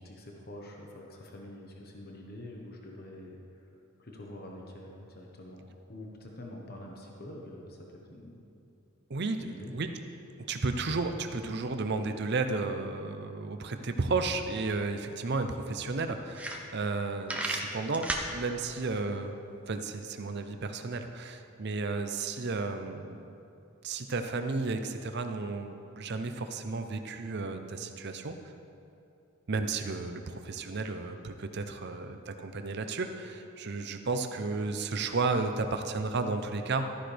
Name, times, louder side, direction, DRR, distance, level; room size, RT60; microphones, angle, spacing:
voice 1, 0.0-3.7 4.0-8.4 9.4-9.8, left 1 dB, 45° left, 0 dB, 1.1 m, -46 dB
voice 2, 9.1-9.9 10.5-19.4 19.7-23.3 23.8-28.4 29.5-36.9, right 3 dB, 55° right, 7 dB, 0.6 m, -33 dB
sound 1, 16.3-17.0 17.3-18.3, right 1 dB, 5° right, 0.7 m, -33 dB
13.0 x 10.0 x 3.4 m, 2.7 s
head